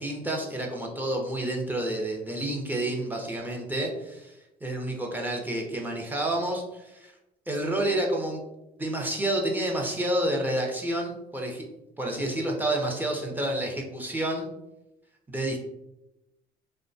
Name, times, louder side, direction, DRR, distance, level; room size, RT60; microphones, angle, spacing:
voice 1, 0.0-4.4 4.6-7.1 7.5-8.4 8.8-11.6 12.0-14.5 15.3-15.6, right 1 dB, 10° right, 0 dB, 0.5 m, -29 dB
2.7 x 2.1 x 2.6 m, 0.91 s
cardioid pair, 110°, 17 cm